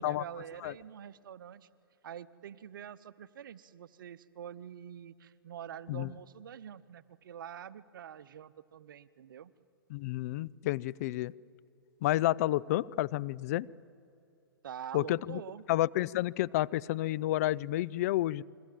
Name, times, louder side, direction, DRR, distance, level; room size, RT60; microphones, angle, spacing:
voice 1, 0.0-1.7 2.0-9.5 14.6-15.6, right 9 dB, 60° right, 17 dB, 0.9 m, -46 dB
voice 2, 9.9-11.3 12.0-13.7 14.9-15.4 15.7-18.4, left 15 dB, 40° left, 21 dB, 0.5 m, -30 dB
29.5 x 22.5 x 7.7 m, 2.7 s
figure-of-eight pair, 115°, 12 cm